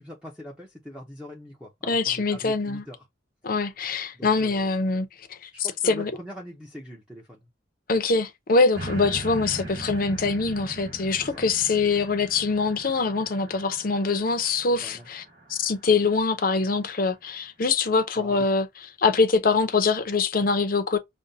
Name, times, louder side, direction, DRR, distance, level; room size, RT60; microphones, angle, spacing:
voice 1, 0.0-3.0 4.1-4.8 5.5-7.5 11.2-11.5 14.7-15.1 18.2-18.5, equal, 5° right, 0.6 m, -42 dB
voice 2, 1.9-2.8 3.4-6.1 7.9-15.2 15.5-18.7 19.0-21.0, left 4 dB, 45° left, 0.6 m, -24 dB
sound 1, 8.7-16.1 16.7-16.8, right 1 dB, 60° right, 1.7 m, -40 dB
5.2 x 2.2 x 2.7 m
head